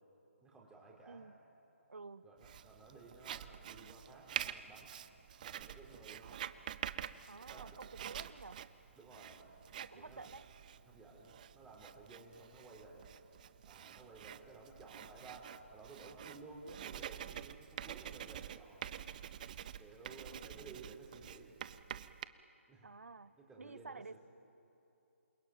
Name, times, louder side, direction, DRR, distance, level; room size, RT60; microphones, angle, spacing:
voice 1, 0.4-1.3 2.2-5.0 5.4-6.5 7.4-8.4 8.9-9.5 9.9-10.3 10.8-13.1 13.6-18.8 19.8-21.6 22.7-22.9 23.4-24.2, right 3 dB, 10° right, -3 dB, 4.5 m, -55 dB
voice 2, 1.1-1.4 1.9-2.3 7.3-8.6 9.8-10.4 20.1-20.5 22.8-23.3 23.6-24.2, right 4 dB, 80° right, 15 dB, 0.8 m, -51 dB
Writing, 2.4-22.3, right 10 dB, 35° right, 0.7 m, -47 dB
28.0 x 21.5 x 9.2 m, 2.9 s
figure-of-eight pair, 150°, 7 cm